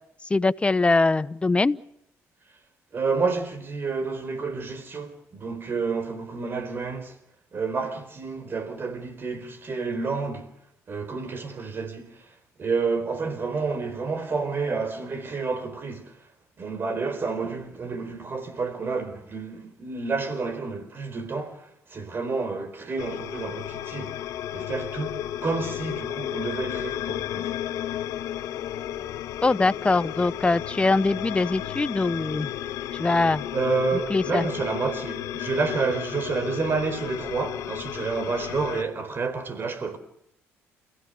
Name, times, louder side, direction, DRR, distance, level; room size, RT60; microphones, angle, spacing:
voice 1, 0.3-1.8 29.4-32.5 32.9-33.4 34.1-34.4, left 3 dB, 20° left, 0.9 m, -22 dB
voice 2, 2.9-7.2 7.5-10.5 10.9-16.3 16.6-27.5 33.5-40.0, right 4 dB, 40° right, 4.3 m, -29 dB
sound 1, 23.0-38.8, left 11 dB, 75° left, 1.4 m, -33 dB
29.5 x 16.5 x 6.8 m
supercardioid pair, 75°, 6 cm